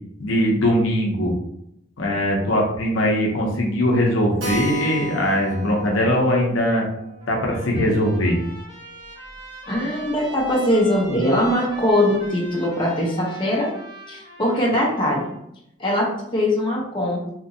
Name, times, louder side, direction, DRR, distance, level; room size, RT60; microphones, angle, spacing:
voice 1, 0.2-1.3 2.0-6.9 7.3-8.4, equal, 70° left, 0 dB, 0.6 m, -20 dB
Keyboard (musical), 4.4-9.5 9.7-9.8 10.1-10.2 10.5-10.6 11.1-11.5, right 1 dB, 70° right, 1.1 m, -36 dB
Trumpet, 7.2-15.4, right 1 dB, 20° right, 0.7 m, -41 dB
voice 2, 9.7-13.7 14.1-15.3 15.8-17.3, left 1 dB, 25° left, -4 dB, 0.6 m, -21 dB
2.8 x 2.6 x 2.6 m, 0.77 s
head